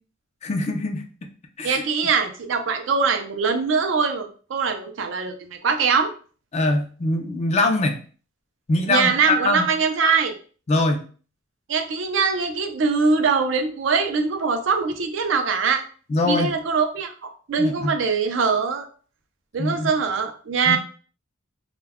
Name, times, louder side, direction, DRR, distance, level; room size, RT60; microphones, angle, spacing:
voice 1, 0.4-1.0 1.6-1.8 6.5-8.0 8.7-9.7 10.7-11.1 16.1-16.6 17.6-18.0 19.6-19.9 20.7-20.8, left 2 dB, 30° left, 5 dB, 0.3 m, -23 dB
voice 2, 1.6-6.1 8.9-10.3 11.7-15.8 16.2-18.9 19.5-20.8, right 5 dB, 65° right, 6 dB, 0.4 m, -22 dB
2.2 x 2.1 x 3.4 m, 0.40 s
head